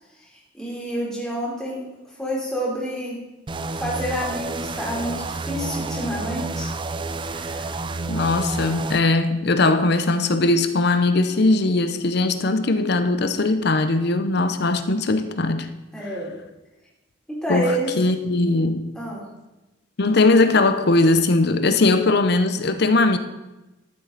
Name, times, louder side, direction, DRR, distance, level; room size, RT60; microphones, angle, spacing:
voice 1, 0.5-1.8 2.2-3.2 3.8-6.7 7.3-7.8 15.9-16.3 17.3-17.9 19.0-19.3, equal, 5° left, -7 dB, 3.5 m, -28 dB
sound 1, 3.5-9.0, right 3 dB, 25° right, 0.4 m, -29 dB
voice 2, 8.1-15.7 17.5-18.9 20.0-23.2, left 2 dB, 55° left, 9 dB, 0.7 m, -20 dB
12.5 x 7.7 x 4.0 m, 1.0 s
head